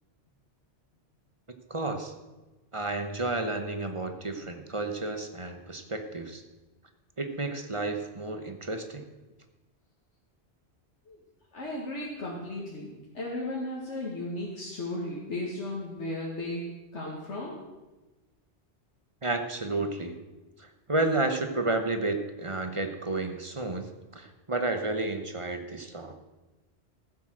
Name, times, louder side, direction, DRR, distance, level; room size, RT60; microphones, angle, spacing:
voice 1, 1.7-2.1 2.7-6.4 7.2-9.0 19.2-20.2 20.6-26.1, right 2 dB, 30° right, 7 dB, 1.1 m, -31 dB
voice 2, 11.5-17.6, left 1 dB, 85° left, -4 dB, 2.3 m, -35 dB
14.5 x 7.8 x 6.3 m, 1.1 s
omnidirectional pair, 1.2 m